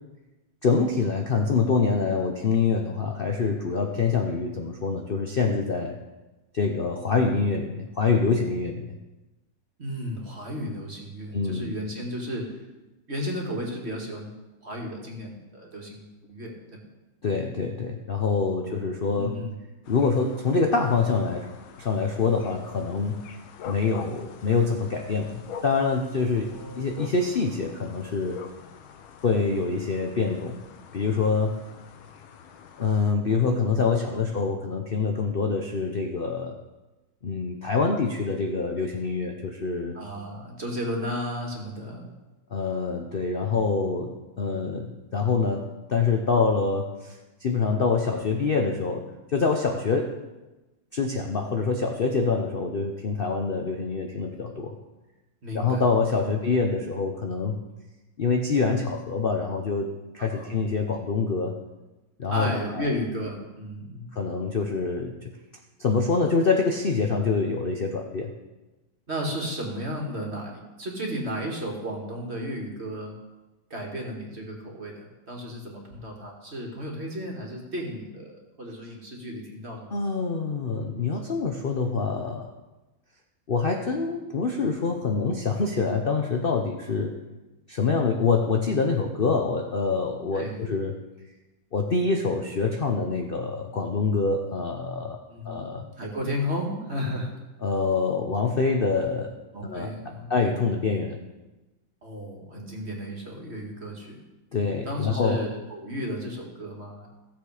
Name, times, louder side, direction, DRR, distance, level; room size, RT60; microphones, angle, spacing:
voice 1, 0.6-6.0 6.5-8.9 11.3-11.7 17.2-19.3 19.9-21.5 21.8-23.2 23.6-28.4 29.2-30.6 30.9-31.6 32.8-36.6 37.2-40.0 42.5-44.9 45.1-50.1 50.9-54.8 55.5-57.6 58.2-61.6 62.2-62.9 64.1-65.1 65.8-68.3 79.9-82.5 83.5-87.1 87.7-91.0 91.7-95.8 97.6-99.3 99.6-99.9 100.3-101.2 104.5-105.4, left 4 dB, 70° left, 2 dB, 0.5 m, -25 dB
voice 2, 9.8-12.6 13.1-14.3 14.6-16.8 18.3-18.6 19.1-19.5 26.5-26.9 33.5-33.6 33.9-34.2 39.9-42.1 44.5-44.9 55.4-55.8 56.2-56.4 60.2-60.6 62.3-64.1 69.1-73.1 73.7-79.9 90.3-90.8 95.3-97.3 99.5-100.4 102.0-104.2 104.8-107.1, equal, 35° right, -1 dB, 2.2 m, -34 dB
sound 1, 19.8-33.1, left 7 dB, 85° left, 1.6 m, -45 dB
15.5 x 7.3 x 4.9 m, 1.1 s
omnidirectional pair, 2.1 m